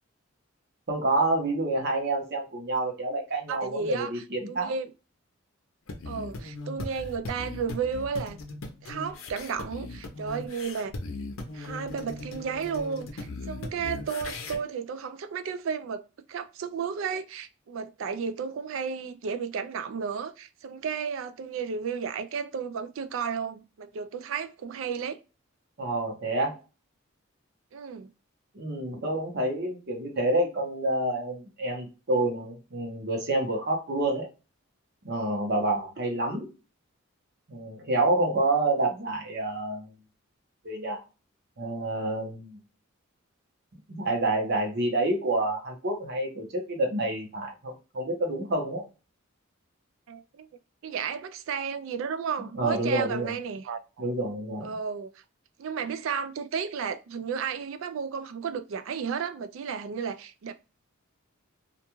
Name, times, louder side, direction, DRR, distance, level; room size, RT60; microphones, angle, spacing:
voice 1, 0.9-4.7 25.8-26.6 28.5-34.3 35.0-36.5 37.5-39.9 40.6-41.0 41.6-42.6 43.9-48.8 52.5-53.3 54.0-54.7, right 2 dB, 50° right, 0.9 m, -28 dB
voice 2, 3.5-4.9 6.1-8.4 8.8-10.9 11.5-16.0 16.3-25.2 27.7-28.1 50.1-50.5 50.8-54.1 54.6-55.1 55.6-60.5, right 6 dB, 70° right, 0.3 m, -33 dB
sound 1, 5.9-14.6, left 2 dB, 70° left, 0.6 m, -38 dB
2.4 x 2.3 x 2.9 m
head